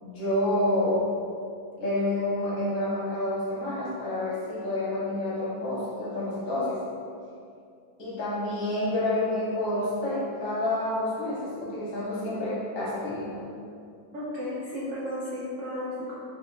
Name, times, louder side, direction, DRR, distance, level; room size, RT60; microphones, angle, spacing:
voice 1, 0.0-1.0 1.8-6.8 8.0-13.5, left 1 dB, 60° left, -8 dB, 1.6 m, -28 dB
voice 2, 14.1-16.2, left 1 dB, 85° right, -8 dB, 0.7 m, -33 dB
3.9 x 2.9 x 2.3 m, 2.4 s
omnidirectional pair, 2.1 m